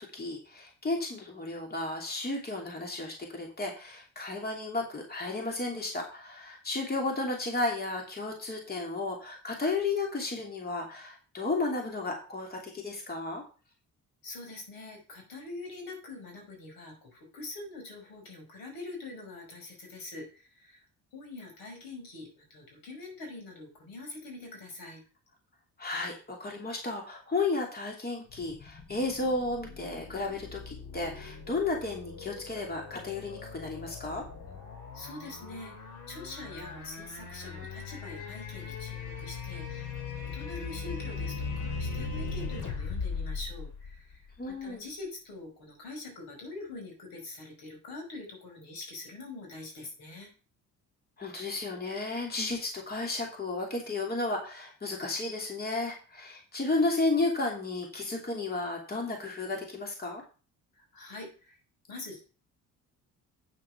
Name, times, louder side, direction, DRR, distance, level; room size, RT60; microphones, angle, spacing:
voice 1, 0.1-13.4 25.8-26.1 26.4-34.3 44.4-44.9 51.2-60.2, left 3 dB, 25° left, 1 dB, 2.8 m, -33 dB
voice 2, 14.2-20.8 21.1-25.0 34.9-39.9 40.2-44.2 44.4-50.3 60.7-61.6 61.9-62.2, left 2 dB, 75° left, 2 dB, 5.1 m, -44 dB
sound 1, 28.3-44.5, left 5 dB, 60° left, 2.6 m, -39 dB
9.0 x 6.3 x 5.9 m, 0.36 s
cardioid pair, 105°, 35 cm